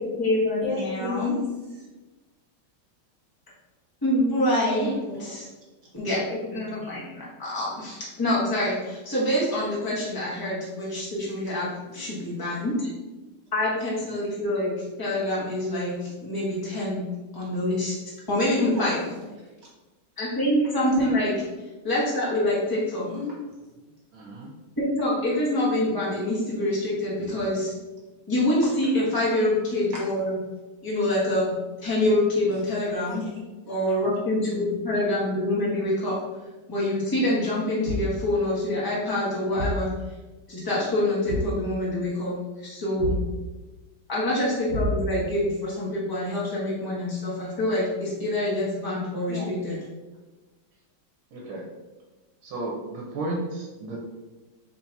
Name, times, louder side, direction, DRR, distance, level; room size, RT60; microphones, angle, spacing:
voice 1, 0.0-1.3 4.0-4.9 5.2-5.4 5.9-12.9 13.5-17.0 17.3-17.9 18.3-19.0 20.2-21.4 21.8-23.1 24.8-27.7 28.3-30.4 30.8-33.2 33.7-36.2 36.7-39.9 40.5-42.4 42.6-43.2 44.1-49.8, left 1 dB, 15° left, -7 dB, 1.1 m, -26 dB
voice 2, 0.6-1.8 4.6-5.3 6.8-6.9 9.5-9.6 11.5-11.6 11.9-12.1 16.1-16.2 18.5-19.2 23.0-23.4 27.2-27.5 28.6-28.7 29.9-30.0 32.5-32.6 33.1-33.8 49.3-49.5, left 2 dB, 55° right, -5 dB, 2.0 m, -34 dB
voice 3, 24.1-24.5 51.3-51.6 52.4-54.0, right 2 dB, 80° right, -3 dB, 1.6 m, -33 dB
Thump thud, 37.8-38.3 39.6-39.9 41.3-41.6 43.0-43.3 44.7-45.3, equal, 35° right, 1.4 m, -29 dB
4.2 x 2.8 x 4.5 m, 1.2 s
omnidirectional pair, 2.2 m